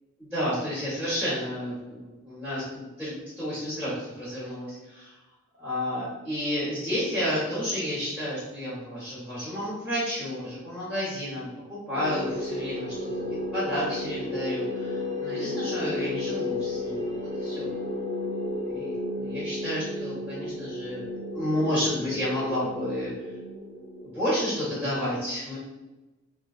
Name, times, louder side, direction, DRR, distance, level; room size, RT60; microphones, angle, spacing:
voice 1, 0.2-5.2 5.6-13.2 13.5-17.1 17.4-17.7 18.7-21.0 21.3-23.1 24.0-25.6, equal, 5° left, -11 dB, 1.1 m, -31 dB
sound 1, 11.9-24.7, left 1 dB, 20° right, 0.7 m, -33 dB
4.4 x 2.4 x 2.4 m, 1.1 s
head